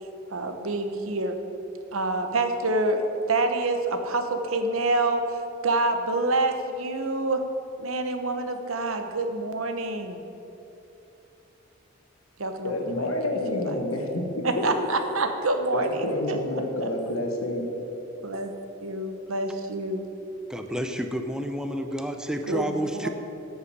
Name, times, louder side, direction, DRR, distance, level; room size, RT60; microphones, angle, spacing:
voice 1, 0.3-1.4 1.9-5.4 5.6-7.5 7.8-10.2 12.4-12.7 13.0-13.1 13.5-13.8 14.4-16.4 16.8-16.9 18.2-18.5 18.8-20.1 22.5-22.8 23.0-23.1, right 2 dB, 90° right, 6 dB, 1.0 m, -27 dB
voice 2, 12.6-14.2 14.6-14.7 15.7-17.7, left 1 dB, 80° left, 2 dB, 1.5 m, -28 dB
voice 3, 20.5-23.1, equal, 5° right, 6 dB, 0.5 m, -30 dB
9.1 x 6.4 x 7.4 m, 2.9 s
head